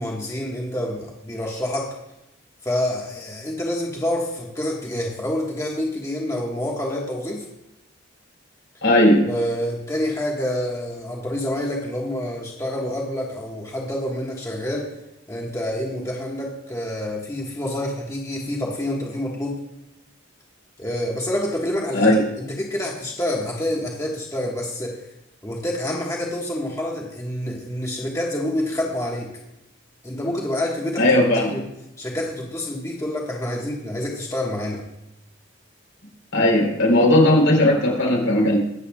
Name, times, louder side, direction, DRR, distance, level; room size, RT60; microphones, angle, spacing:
voice 1, 0.0-2.0 2.6-7.4 9.3-14.9 15.3-19.6 20.8-25.0 25.4-29.3 30.0-31.0 31.5-31.6 32.0-34.8, left 1 dB, 15° left, -2 dB, 1.5 m, -27 dB
voice 2, 8.8-9.3 21.9-22.2 31.0-31.5 36.3-38.6, left 1 dB, 80° left, -1 dB, 3.7 m, -17 dB
23.0 x 8.1 x 2.4 m, 0.90 s
head